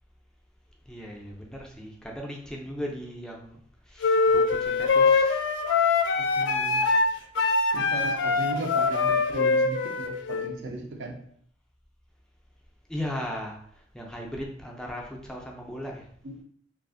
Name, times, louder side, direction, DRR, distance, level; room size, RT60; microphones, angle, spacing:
voice 1, 0.9-3.6 3.9-5.4 12.9-13.6 13.9-16.1, equal, 5° left, -1 dB, 0.3 m, -37 dB
sound 1, 4.0-10.5, left 4 dB, 90° left, 0.3 m, -23 dB
voice 2, 6.4-6.8 7.7-11.2 16.2-16.4, right 2 dB, 85° right, 2 dB, 0.5 m, -36 dB
2.4 x 2.4 x 2.4 m, 0.63 s
head